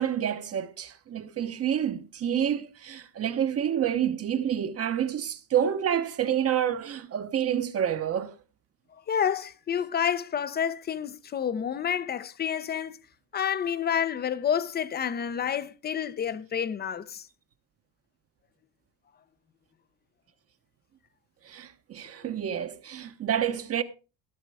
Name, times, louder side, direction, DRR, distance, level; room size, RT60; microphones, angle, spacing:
voice 1, 0.0-8.3 21.4-23.8, right 9 dB, 35° right, 1.0 m, -28 dB
voice 2, 9.1-13.0 13.3-17.3, left 8 dB, 20° left, 0.7 m, -29 dB
16.0 x 6.5 x 4.8 m
cardioid pair, 135°, 44 cm